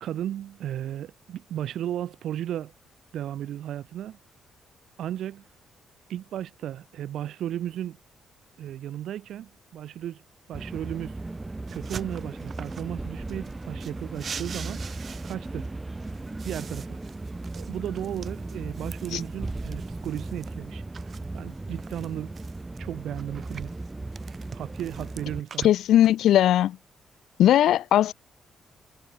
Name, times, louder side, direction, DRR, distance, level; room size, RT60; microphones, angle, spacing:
voice 1, 0.0-2.7 3.1-4.2 5.0-5.4 6.1-8.0 8.6-10.2 10.5-11.2 11.7-14.8 15.2-15.7 16.4-17.0 17.5-20.8 21.3-22.3 22.8-23.7 24.5-25.7, right 11 dB, 70° right, 1.5 m, -35 dB
sound 1, 10.5-25.4, right 2 dB, 10° right, 0.7 m, -37 dB
sound 2, 11.7-12.9 13.3-15.7 16.0-20.5 20.9-22.8 23.2-26.1, right 6 dB, 35° right, 7.2 m, -44 dB
voice 2, 25.6-26.8 27.4-28.1, left 12 dB, 75° left, 0.4 m, -19 dB
cardioid pair, 170°, 0 cm